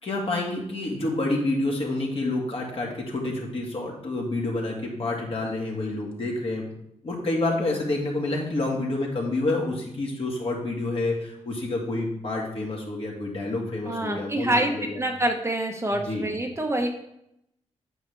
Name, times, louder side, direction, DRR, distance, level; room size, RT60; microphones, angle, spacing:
voice 1, 0.0-6.7 7.0-15.0 15.9-16.3, left 2 dB, 50° left, -2 dB, 2.2 m, -28 dB
voice 2, 13.9-16.9, right 1 dB, 20° right, 3 dB, 1.0 m, -26 dB
8.6 x 5.6 x 3.4 m, 0.77 s
cardioid pair, 80°, 12 cm